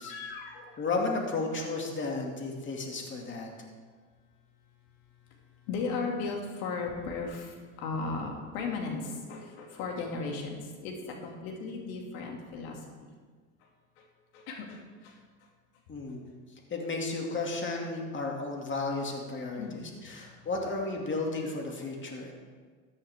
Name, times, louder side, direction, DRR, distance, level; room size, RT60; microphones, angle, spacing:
voice 1, 0.0-0.6 5.7-10.9 11.2-12.8 14.3-14.8 19.6-19.8, left 4 dB, 75° left, 1 dB, 2.5 m, -36 dB
voice 2, 0.8-3.5 15.9-16.3 16.7-22.3, left 3 dB, 30° left, 0 dB, 2.5 m, -33 dB
14.0 x 10.0 x 3.6 m, 1.5 s
supercardioid pair, 100°, 39 cm